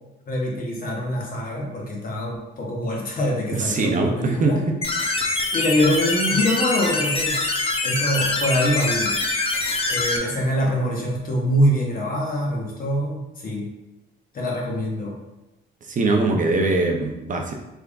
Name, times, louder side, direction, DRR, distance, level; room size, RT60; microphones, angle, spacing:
voice 1, 0.3-4.6 5.5-7.4 7.8-9.2 9.9-13.7 14.3-15.2, equal, 45° left, -2 dB, 1.0 m, -24 dB
voice 2, 3.5-4.8 5.3-5.5 15.8-17.5, right 3 dB, 40° right, 2 dB, 0.5 m, -22 dB
sound 1, 4.8-10.2, left 2 dB, 30° left, 0.6 m, -24 dB
3.5 x 3.5 x 2.4 m, 0.98 s
cardioid pair, 90°, 20 cm